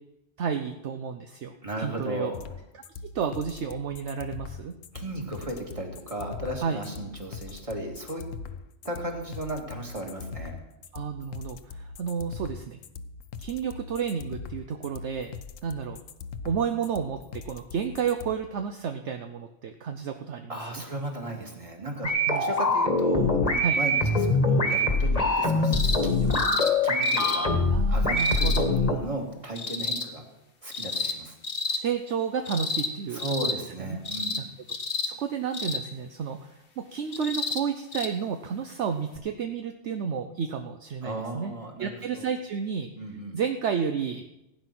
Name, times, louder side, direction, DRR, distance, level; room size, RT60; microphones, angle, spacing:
voice 1, 0.4-2.3 2.7-4.8 6.6-6.8 10.9-12.8 13.4-15.3 15.6-16.0 16.4-20.8 22.0-22.4 23.6-23.8 27.7-28.7 30.9-31.1 31.7-33.5 33.8-34.0 35.0-36.5 36.8-41.5 41.8-42.9 43.3-44.3, right 7 dB, 65° right, 6 dB, 1.0 m, -31 dB
voice 2, 1.6-2.4 4.9-8.2 8.8-10.6 20.5-27.5 27.9-30.3 30.6-31.4 33.1-34.4 41.0-42.3 43.0-43.4, right 1 dB, 25° right, 2 dB, 2.2 m, -35 dB
sound 1, 2.3-18.3, left 5 dB, 75° left, 1.1 m, -41 dB
sound 2, 22.0-29.0, left 2 dB, 30° left, 1.5 m, -23 dB
sound 3, 25.7-26.0 26.3-26.7 27.0-27.4 28.2-28.6 29.6-30.0 30.7-31.1 31.4-31.8 32.5-32.9 33.2-33.6 34.0-34.4 34.7-35.1 35.5-35.8 37.1-37.6 37.9-38.1 39.2-39.3, left 4 dB, 45° left, 1.3 m, -30 dB
16.0 x 9.3 x 6.0 m, 0.92 s
omnidirectional pair, 1.4 m